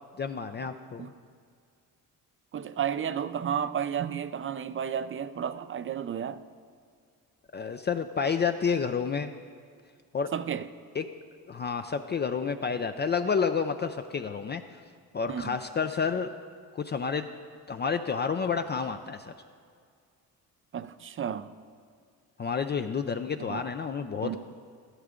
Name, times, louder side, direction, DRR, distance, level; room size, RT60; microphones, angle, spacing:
voice 1, 0.2-1.1 7.5-9.3 10.1-10.3 10.9-11.1 11.5-14.6 15.1-16.3 16.7-17.3 17.7-19.3 22.4-24.4, left 6 dB, 30° left, 0.4 m, -30 dB
voice 2, 2.5-6.4 10.3-10.7 15.3-15.6 20.7-21.5 23.4-23.6 24.2-24.4, right 8 dB, 35° right, 0.4 m, -32 dB
13.0 x 11.0 x 3.7 m
cardioid pair, 85°, 36 cm